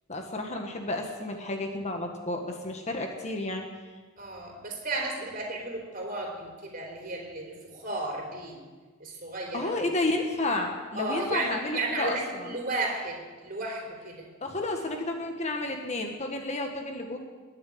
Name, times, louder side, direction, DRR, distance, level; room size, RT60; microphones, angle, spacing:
voice 1, 0.1-3.7 9.5-12.5 14.4-17.2, left 2 dB, 30° left, 3 dB, 1.4 m, -31 dB
voice 2, 4.2-8.6 9.0-9.7 10.9-14.3, right 2 dB, 40° right, 0 dB, 3.8 m, -34 dB
21.0 x 7.1 x 9.5 m, 1.4 s
head